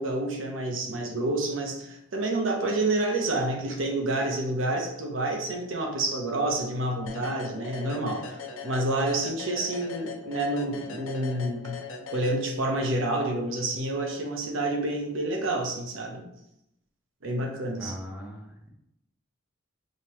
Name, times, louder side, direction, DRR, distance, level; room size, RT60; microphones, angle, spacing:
voice 1, 0.0-11.8 12.1-16.2 17.2-17.9, right 2 dB, 70° right, 1 dB, 0.8 m, -28 dB
sound 1, 7.1-12.9, left 5 dB, 80° left, 0.6 m, -40 dB
voice 2, 17.8-18.7, equal, 5° right, -3 dB, 1.0 m, -40 dB
5.1 x 2.9 x 2.9 m, 0.80 s
head